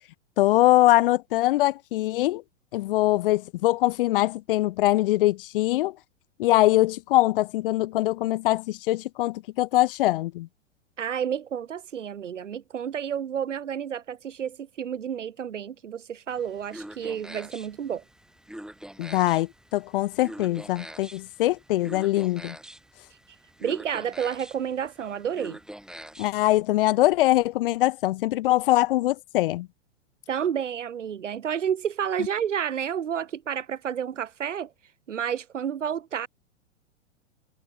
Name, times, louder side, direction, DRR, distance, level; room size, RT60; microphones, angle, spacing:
voice 1, 0.4-2.4 2.7-5.9 6.4-10.5 19.0-22.6 26.2-29.7, left 16 dB, 45° left, 0.6 m, -23 dB
voice 2, 11.0-18.0 23.6-25.6 30.3-34.7 35.1-36.3, right 8 dB, 75° right, 1.6 m, -30 dB
sound 1, 16.3-26.5, right 1 dB, ahead, 4.4 m, -44 dB
figure-of-eight pair, 100°, 38 cm